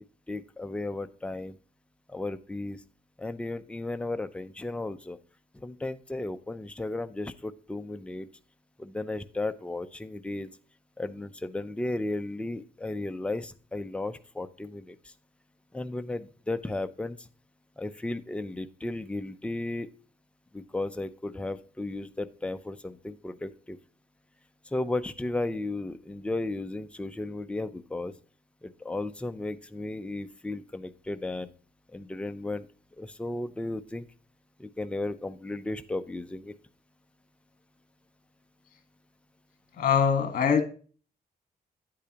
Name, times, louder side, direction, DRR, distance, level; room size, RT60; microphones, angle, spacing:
voice 1, 0.3-1.6 2.1-2.8 3.2-5.2 5.5-8.3 8.8-10.5 11.0-15.0 15.7-17.3 17.8-19.9 20.5-23.8 24.7-28.1 28.6-31.5 31.9-32.7 33.0-34.0 34.6-36.5, left 2 dB, 5° left, 9 dB, 0.5 m, -34 dB
voice 2, 39.8-40.6, left 7 dB, 60° left, 8 dB, 1.4 m, -23 dB
9.3 x 8.4 x 2.9 m, 0.39 s
wide cardioid pair, 145°, 16 cm